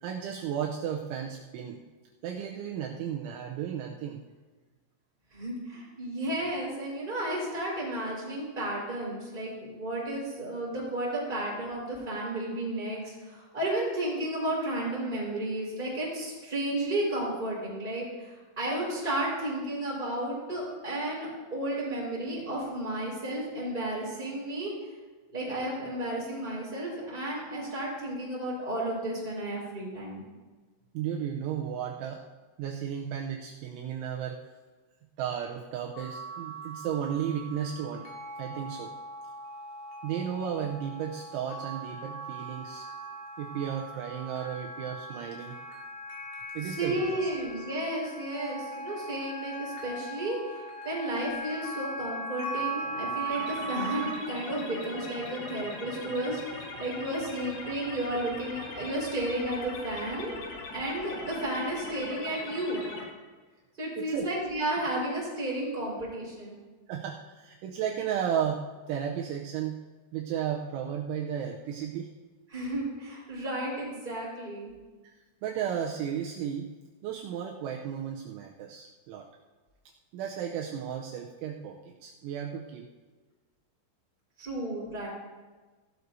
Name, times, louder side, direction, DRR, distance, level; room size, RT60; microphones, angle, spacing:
voice 1, 0.0-1.8 2.2-4.2 30.9-32.2 32.6-34.4 35.2-38.1 38.4-38.9 40.0-42.9 43.4-45.6 46.5-47.3 64.0-64.3 66.9-69.8 70.1-72.1 75.0-75.1 75.4-76.7 77.0-79.3 80.1-82.9, right 8 dB, 80° right, 0 dB, 2.9 m, -34 dB
voice 2, 5.3-24.7 25.3-30.2 46.6-50.6 50.8-60.4 60.7-62.9 63.8-66.6 72.5-74.7 84.4-85.1, right 1 dB, 10° right, -5 dB, 4.2 m, -33 dB
sound 1, 35.9-54.1, right 2 dB, 55° left, 3.9 m, -39 dB
sound 2, 53.3-63.0, left 3 dB, 85° left, 4.7 m, -41 dB
16.0 x 12.5 x 2.7 m, 1.3 s
omnidirectional pair, 5.8 m